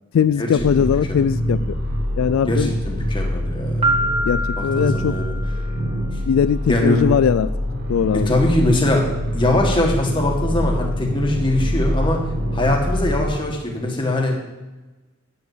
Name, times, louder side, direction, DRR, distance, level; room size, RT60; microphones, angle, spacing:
voice 1, 0.1-1.6 2.2-2.7 4.2-5.2 6.3-7.5 7.9-8.3, left 7 dB, 75° left, 14 dB, 0.3 m, -19 dB
sound 1, 0.6-13.2, equal, 45° right, 3.0 m, -25 dB
voice 2, 0.8-1.3 2.5-3.9 4.6-5.3 6.7-7.0 8.1-9.1 9.3-12.2 12.5-14.4, left 1 dB, 25° left, 0 dB, 1.7 m, -22 dB
Piano, 3.8-5.7, right 1 dB, 25° right, 1.5 m, -24 dB
9.6 x 6.7 x 6.8 m, 1.1 s
head